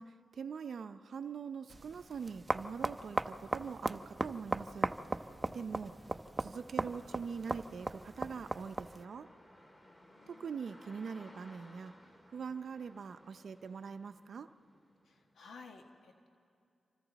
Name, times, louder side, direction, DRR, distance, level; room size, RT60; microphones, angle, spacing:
voice 1, 0.0-4.9 5.5-5.9 6.4-9.3 10.3-11.9 12.3-14.5, right 6 dB, 70° right, 9 dB, 0.5 m, -43 dB
sound 1, 1.7-9.0, right 2 dB, 25° right, 0.6 m, -38 dB
sound 2, 4.1-15.3, left 1 dB, 25° left, 2.2 m, -62 dB
voice 2, 5.4-5.8 9.8-10.6 15.0-16.3, left 4 dB, 85° left, 4 dB, 1.3 m, -56 dB
28.0 x 25.0 x 4.1 m, 2.4 s
cardioid pair, 65°, 0 cm